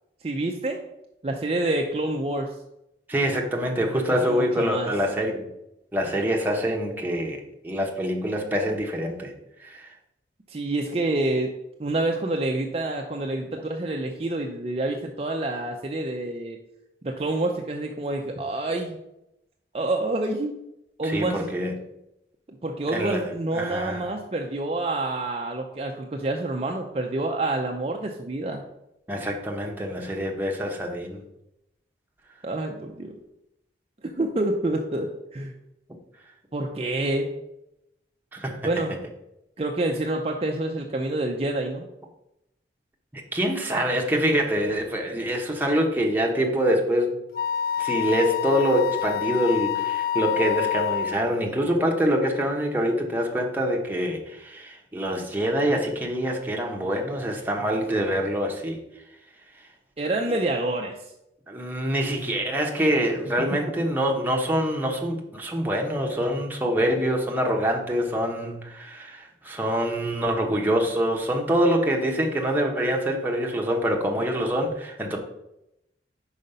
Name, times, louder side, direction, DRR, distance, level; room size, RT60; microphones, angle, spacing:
voice 1, 0.2-0.8 1.2-2.6 4.2-4.9 10.5-11.5 11.8-16.6 17.0-19.0 19.7-20.5 21.0-21.5 22.6-28.6 32.4-33.1 34.0-35.5 36.5-37.3 38.6-38.9 39.6-41.9 60.0-61.0, right 2 dB, 35° right, 2 dB, 0.5 m, -27 dB
voice 2, 3.1-5.5 5.9-9.3 9.6-9.9 21.0-21.7 22.9-23.2 23.5-24.1 29.1-31.2 38.3-38.7 43.1-47.2 47.8-58.8 61.5-75.2, equal, 10° right, 0 dB, 0.9 m, -25 dB
Wind instrument woodwind instrument, 47.3-51.2, left 11 dB, 55° left, 0.3 m, -27 dB
5.2 x 4.9 x 5.4 m, 0.86 s
head